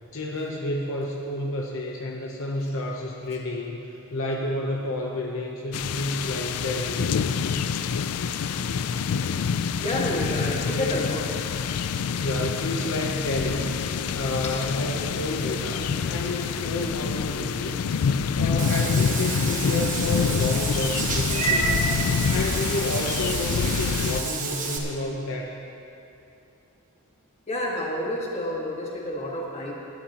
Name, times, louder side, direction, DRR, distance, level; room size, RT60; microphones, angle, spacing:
voice 1, 0.1-7.1 10.6-11.0 12.1-13.7 14.1-17.8 18.3-21.9 22.3-25.6, left 2 dB, 60° left, -1 dB, 0.9 m, -30 dB
sound 1, 5.7-24.2, left 6 dB, 90° left, 0.4 m, -27 dB
voice 2, 9.8-11.3 27.5-29.7, left 1 dB, 30° left, -3 dB, 1.9 m, -29 dB
Meow / Water / Bathtub (filling or washing), 18.6-24.8, right 4 dB, 35° right, 1.2 m, -29 dB
20.5 x 11.5 x 3.0 m, 2.8 s
head